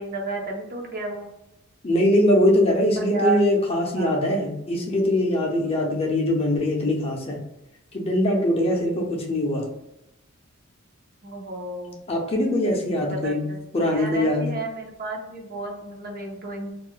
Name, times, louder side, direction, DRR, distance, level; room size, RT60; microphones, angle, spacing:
voice 1, 0.0-1.3 3.0-3.4 4.0-4.2 11.2-12.0 13.0-16.7, right 3 dB, 45° right, 1 dB, 0.5 m, -32 dB
voice 2, 1.8-7.4 7.9-9.7 12.1-14.5, left 1 dB, 30° left, 0 dB, 0.5 m, -22 dB
2.4 x 2.1 x 3.6 m, 0.91 s
head